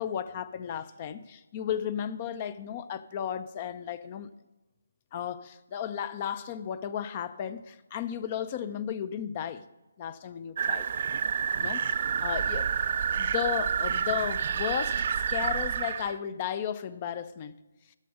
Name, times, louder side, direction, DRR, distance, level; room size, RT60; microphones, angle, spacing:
voice 1, 0.0-4.3 5.1-9.6 10.0-10.9 11.6-12.7 13.1-17.5, left 9 dB, 30° left, 0.6 m, -34 dB
sound 1, 10.6-16.2, right 7 dB, 45° right, 0.3 m, -29 dB
11.5 x 6.9 x 6.5 m
figure-of-eight pair, 150°, 0 cm